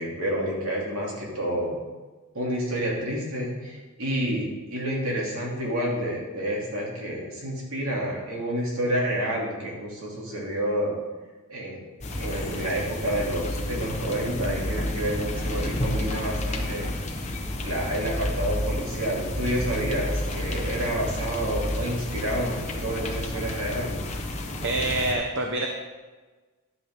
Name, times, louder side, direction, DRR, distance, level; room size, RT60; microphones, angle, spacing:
voice 1, 0.0-1.8 2.3-10.9 11.5-11.8 12.2-16.9 17.6-24.0, right 1 dB, 70° right, -3 dB, 2.9 m, -29 dB
sound 1, 12.0-25.1, left 1 dB, 30° left, 1.0 m, -30 dB
voice 2, 24.6-25.7, right 2 dB, 55° right, 2 dB, 0.8 m, -26 dB
11.5 x 8.4 x 3.7 m, 1.3 s
head